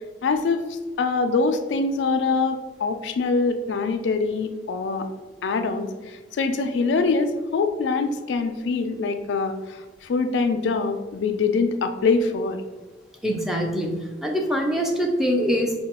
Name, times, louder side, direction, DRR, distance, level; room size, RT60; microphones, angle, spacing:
voice 1, 0.2-5.1 5.4-12.6, left 4 dB, 90° left, 7 dB, 0.3 m, -24 dB
voice 2, 13.2-15.7, equal, ahead, 1 dB, 0.4 m, -24 dB
4.8 x 2.2 x 2.9 m, 1.3 s
head